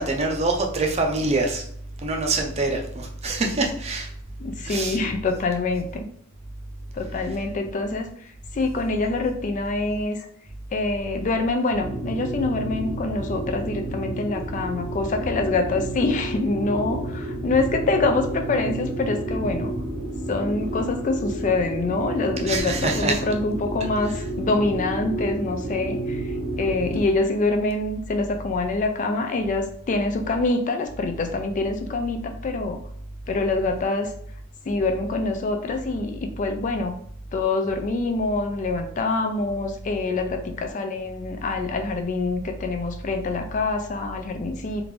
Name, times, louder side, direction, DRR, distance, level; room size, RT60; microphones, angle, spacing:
voice 1, 0.0-1.6 2.0-4.1 4.6-5.0 22.5-23.2, right 2 dB, 30° right, 2 dB, 0.5 m, -25 dB
voice 2, 4.4-6.1 6.9-10.3 10.7-19.7 20.3-32.8 33.3-34.1 34.7-36.9 37.3-44.9, left 3 dB, 35° left, 6 dB, 0.3 m, -25 dB
sound 1, 11.8-27.0, right 1 dB, 90° right, 1.5 m, -31 dB
3.5 x 2.5 x 3.1 m, 0.63 s
head